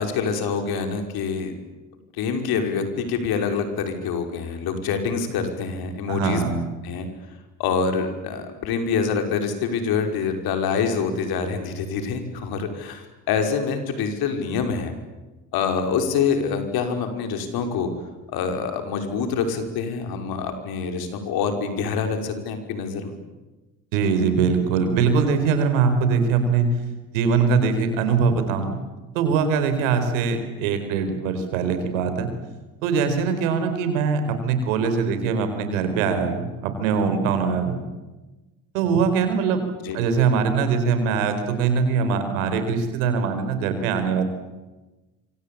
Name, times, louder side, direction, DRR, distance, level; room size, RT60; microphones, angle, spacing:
voice 1, 0.0-1.5 2.2-6.5 6.8-7.1 7.6-14.9 15.5-17.9 18.3-23.2 39.8-40.0, left 5 dB, 70° left, 6 dB, 5.7 m, -26 dB
voice 2, 6.1-6.6 23.9-26.7 27.1-28.8 29.1-32.3 32.8-37.8 38.7-39.6 39.9-44.2, right 5 dB, 85° right, 9 dB, 4.8 m, -22 dB
26.0 x 25.5 x 8.8 m, 1.1 s
hypercardioid pair, 65°, 38 cm